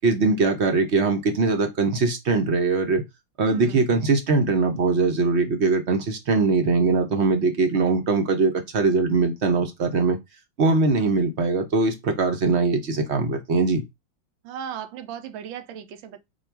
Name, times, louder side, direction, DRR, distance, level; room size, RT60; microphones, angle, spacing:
voice 1, 0.0-3.0 3.4-10.2 10.6-13.8, right 3 dB, 50° right, 0.9 m, -21 dB
voice 2, 3.4-3.8 11.0-11.3 14.4-16.2, right 9 dB, 80° right, 1.4 m, -37 dB
4.8 x 2.4 x 4.5 m
omnidirectional pair, 2.1 m